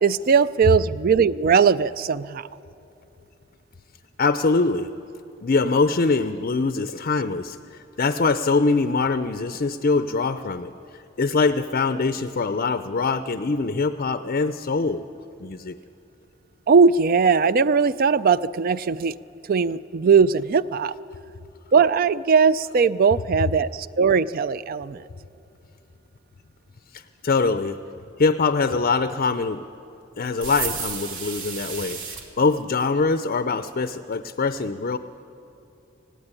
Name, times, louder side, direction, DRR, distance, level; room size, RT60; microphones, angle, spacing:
voice 1, 0.0-2.5 16.7-19.1 19.5-20.9 21.7-25.0, right 5 dB, 45° right, 17 dB, 0.4 m, -19 dB
voice 2, 4.2-4.9 5.4-7.6 8.0-10.7 11.2-15.0 15.4-15.8 26.9-27.8 28.2-29.6 30.2-32.0 32.4-35.0, left 4 dB, 45° left, 10 dB, 0.5 m, -23 dB
sound 1, 30.4-32.2, right 5 dB, 85° right, 2.5 m, -32 dB
17.5 x 15.5 x 9.7 m, 2.8 s
head